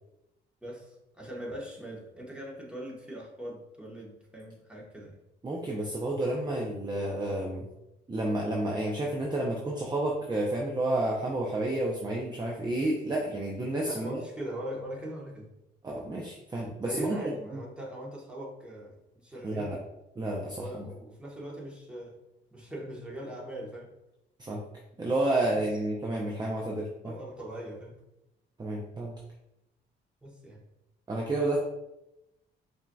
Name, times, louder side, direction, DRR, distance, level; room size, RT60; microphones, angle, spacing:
voice 1, 0.6-5.1 13.8-15.5 16.8-19.7 20.6-22.2 22.5-23.9 27.0-28.0 30.2-30.6, right 1 dB, 5° right, -4 dB, 1.2 m, -41 dB
voice 2, 5.4-7.7 8.1-14.2 15.8-17.2 17.5-17.6 19.4-19.8 20.2-20.9 24.4-24.6 25.0-27.1 28.6-29.1 31.1-31.6, right 1 dB, 20° right, -2 dB, 0.6 m, -30 dB
5.4 x 2.7 x 2.3 m, 0.90 s
cardioid pair, 90°, 20 cm